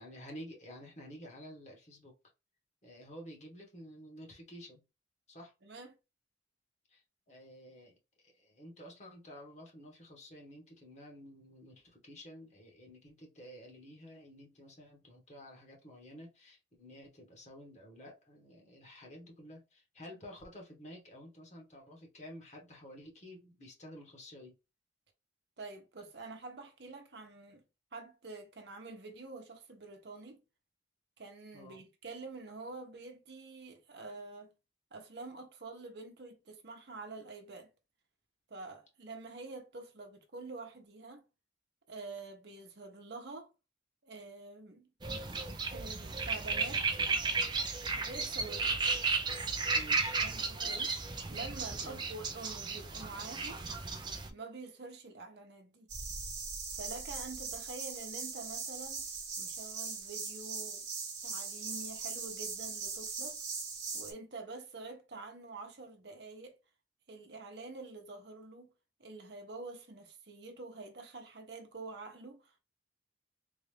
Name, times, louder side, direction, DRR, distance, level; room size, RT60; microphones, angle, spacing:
voice 1, 0.0-2.1 2.8-4.8 5.3-5.5 6.9-8.0 8.2-24.5 31.5-31.8 49.7-50.2 51.8-52.0, equal, 35° left, 1.4 m, -51 dB
voice 2, 5.6-6.0 25.6-27.6 27.9-30.4 31.2-34.5 34.9-37.7 38.5-41.3 41.9-43.5 44.0-44.9 45.7-47.0 47.9-48.8 50.2-53.6 54.3-55.9 56.7-59.1 59.4-60.9 61.2-63.4 63.9-66.6 67.1-68.7 69.0-72.6, right 3 dB, 55° right, 0.8 m, -47 dB
sound 1, 45.0-54.3, right 4 dB, 25° right, 0.5 m, -34 dB
sound 2, 55.9-64.1, right 5 dB, 40° right, 1.2 m, -40 dB
3.9 x 2.5 x 3.3 m
head